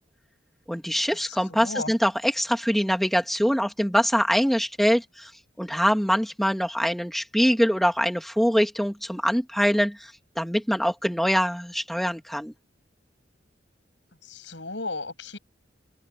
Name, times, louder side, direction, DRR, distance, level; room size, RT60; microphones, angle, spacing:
voice 1, 0.7-5.3 5.6-12.5, equal, ahead, 2.2 m, -24 dB
voice 2, 1.3-1.9 14.2-15.4, left 3 dB, 75° left, 7.5 m, -35 dB
open air
head